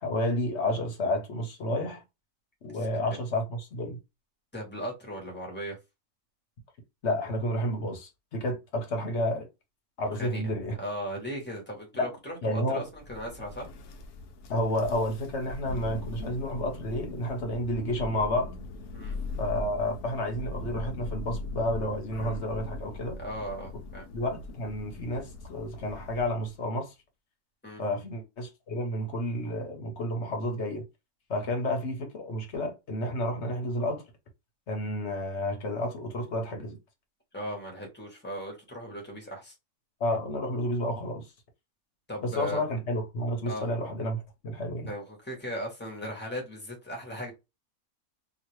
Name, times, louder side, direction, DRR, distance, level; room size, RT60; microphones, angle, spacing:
voice 1, 0.0-2.0 2.6-4.0 7.0-9.5 10.0-10.7 12.0-12.1 12.4-12.8 14.5-18.5 19.4-23.2 24.1-26.9 27.8-30.8 31.3-34.0 34.7-36.8 40.0-41.3 42.2-44.9, left 1 dB, 55° left, 1.2 m, -30 dB
voice 2, 2.7-3.0 4.5-5.8 10.2-10.4 10.8-13.7 18.9-19.1 23.2-24.1 27.6-27.8 37.3-39.5 42.1-42.6 43.4-43.7 44.9-47.3, equal, 10° left, 1.2 m, -37 dB
Thunder, 12.9-26.5, left 2 dB, 90° left, 1.2 m, -40 dB
2.9 x 2.7 x 3.0 m
omnidirectional pair, 1.6 m